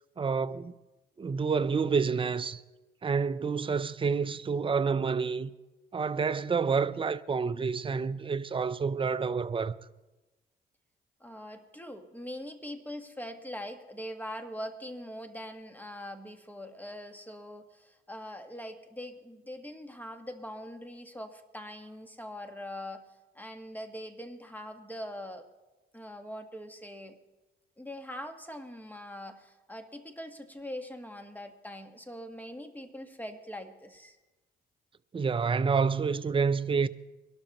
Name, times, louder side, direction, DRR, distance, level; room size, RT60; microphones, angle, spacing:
voice 1, 0.2-0.8 1.2-2.6 3.0-5.5 5.9-9.7 35.1-36.9, right 5 dB, 25° right, 0.5 m, -28 dB
voice 2, 11.2-23.0 23.3-25.4 25.9-27.2 27.8-34.2, equal, 10° left, 1.4 m, -42 dB
23.0 x 12.0 x 3.0 m
cardioid pair, 90°, 20 cm